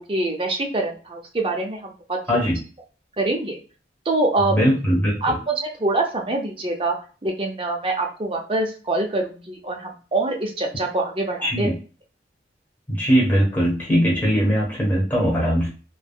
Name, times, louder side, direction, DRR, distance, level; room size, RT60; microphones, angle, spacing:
voice 1, 0.0-2.2 3.2-3.6 4.1-4.6 5.2-7.0 7.2-11.7, right 2 dB, 30° right, 1 dB, 0.5 m, -25 dB
voice 2, 4.5-5.4 11.4-11.7 12.9-15.7, equal, 10° left, -4 dB, 1.1 m, -20 dB
3.3 x 2.1 x 2.2 m, 0.37 s
head